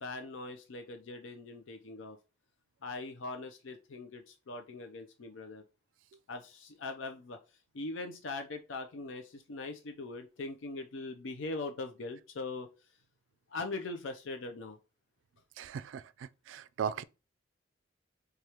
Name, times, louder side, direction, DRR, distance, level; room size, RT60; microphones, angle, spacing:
voice 1, 0.0-2.2 2.8-5.6 6.3-7.4 7.7-12.7 13.5-14.8, left 3 dB, 85° left, 0.5 m, -41 dB
voice 2, 15.6-17.0, right 7 dB, 75° right, 0.3 m, -38 dB
4.8 x 2.3 x 2.8 m
head